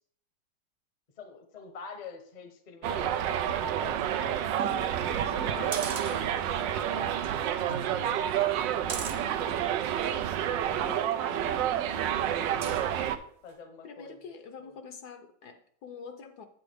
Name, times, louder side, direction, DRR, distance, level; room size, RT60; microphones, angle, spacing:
voice 1, 1.2-10.1 10.7-12.8 13.4-14.3 14.6-14.7, left 5 dB, 30° left, 6 dB, 0.8 m, -49 dB
Subway metro underground, 2.8-13.2, right 10 dB, 85° right, 1.3 m, -29 dB
sound 1, 4.6-6.8 7.2-7.3 7.7-10.2 10.8-13.0 13.5-13.6, right 5 dB, 50° right, 0.9 m, -40 dB
voice 2, 13.8-16.5, left 5 dB, 65° left, 6 dB, 1.3 m, -45 dB
8.5 x 7.8 x 3.5 m, 0.62 s
omnidirectional pair, 1.9 m